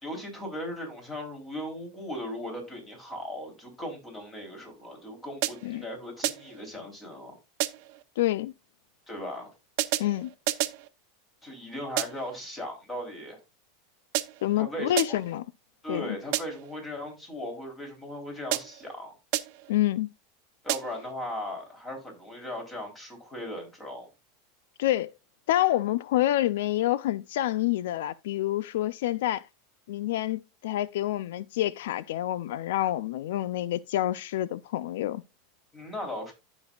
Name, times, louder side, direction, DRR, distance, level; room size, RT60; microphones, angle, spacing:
voice 1, 0.0-7.4 9.1-9.5 11.4-13.4 14.6-15.2 15.8-19.1 20.6-24.1 35.7-36.3, left 1 dB, 15° left, 3.5 m, -38 dB
sound 1, 5.4-5.8 6.2-6.7 7.6-8.0 9.8-10.9 12.0-12.4 14.1-14.6 15.0-15.4 16.3-16.7 18.5-18.9 19.3-19.7 20.7-21.1, right 17 dB, 55° right, 0.8 m, -31 dB
voice 2, 8.2-8.5 10.0-10.3 14.4-15.4 15.9-16.2 19.7-20.1 24.8-25.1 25.5-29.5 29.9-35.2, left 14 dB, 75° left, 0.4 m, -27 dB
15.0 x 5.4 x 2.3 m
supercardioid pair, 155°, 0 cm